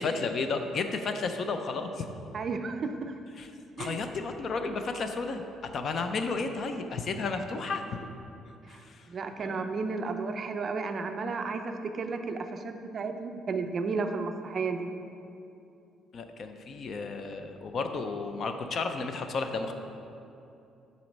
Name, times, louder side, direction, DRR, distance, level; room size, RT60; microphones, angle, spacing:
voice 1, 0.0-2.1 3.4-3.5 3.8-7.8 8.7-9.1 9.4-9.8 16.1-19.7, left 4 dB, 40° left, 7 dB, 0.5 m, -33 dB
voice 2, 2.3-3.1 3.8-4.0 8.7-8.8 9.1-14.9, right 4 dB, 35° right, 6 dB, 0.4 m, -33 dB
7.6 x 4.1 x 5.3 m, 2.7 s
cardioid pair, 150°, 0 cm